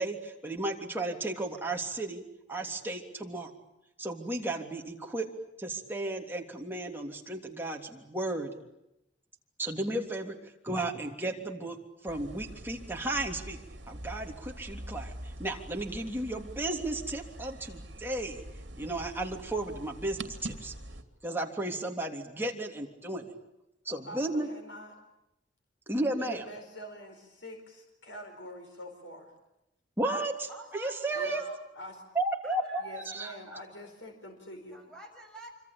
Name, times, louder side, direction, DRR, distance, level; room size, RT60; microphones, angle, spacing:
voice 1, 0.0-2.2 2.5-3.5 4.0-5.3 5.6-8.5 9.6-10.4 10.6-11.8 12.0-13.6 13.9-15.1 15.4-18.4 18.8-20.7 21.2-23.3 23.8-24.5 25.9-26.4 30.0-31.4 32.1-33.6, right 2 dB, 10° right, 1 dB, 3.2 m, -34 dB
sound 1, 12.1-21.0, right 1 dB, 70° right, 2.7 m, -44 dB
voice 2, 24.0-24.9 26.2-29.3 31.1-31.4 31.7-32.0 32.8-34.8, left 1 dB, 85° left, 4 dB, 4.7 m, -45 dB
voice 3, 30.5-31.6 32.4-33.6 34.7-35.5, right 2 dB, 5° left, 2 dB, 7.0 m, -48 dB
26.0 x 25.5 x 8.8 m, 0.89 s
head